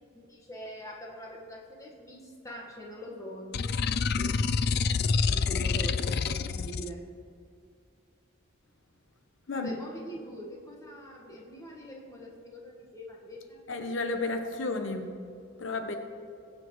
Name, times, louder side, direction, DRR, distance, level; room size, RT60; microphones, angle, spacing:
voice 1, 0.1-3.7 4.1-4.3 5.3-7.0 9.5-13.6, equal, 15° left, -1 dB, 1.5 m, -43 dB
sound 1, 3.5-6.9, left 5 dB, 55° left, 0.4 m, -27 dB
voice 2, 13.7-15.2 15.6-16.0, left 3 dB, 75° left, 5 dB, 0.9 m, -32 dB
22.0 x 7.7 x 3.1 m, 2.4 s
head